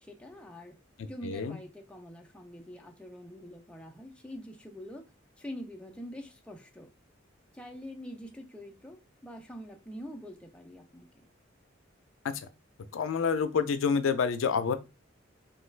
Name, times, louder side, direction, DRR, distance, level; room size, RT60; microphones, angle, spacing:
voice 1, 0.0-0.8 1.0-5.1 5.4-6.9 7.5-11.3, equal, 5° left, 0.4 m, -45 dB
voice 2, 1.2-1.6 12.9-14.7, left 5 dB, 85° left, 0.4 m, -27 dB
3.1 x 2.2 x 3.2 m
head